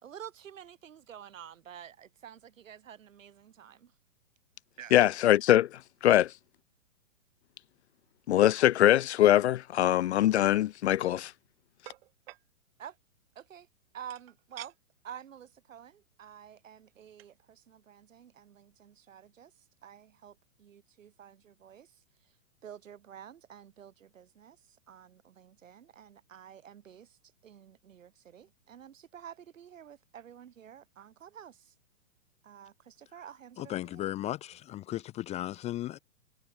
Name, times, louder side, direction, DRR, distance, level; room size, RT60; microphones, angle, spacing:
voice 1, 0.0-3.9 4.8-5.0 12.8-13.0 13.3-13.7 13.9-14.7 15.0-22.4 22.6-31.7 32.4-34.1, right 9 dB, 65° right, 3.0 m, -50 dB
voice 2, 4.9-6.3 8.3-11.3, left 13 dB, 55° left, 0.5 m, -23 dB
sound 1, 10.7-11.0 11.8-12.4 14.1-14.8 15.3-15.4 15.7-15.9 16.9-17.0 17.2-17.4, right 16 dB, 45° right, 1.1 m, -49 dB
voice 3, 33.6-36.0, left 14 dB, 15° left, 0.7 m, -36 dB
hypercardioid pair, 120°, 41 cm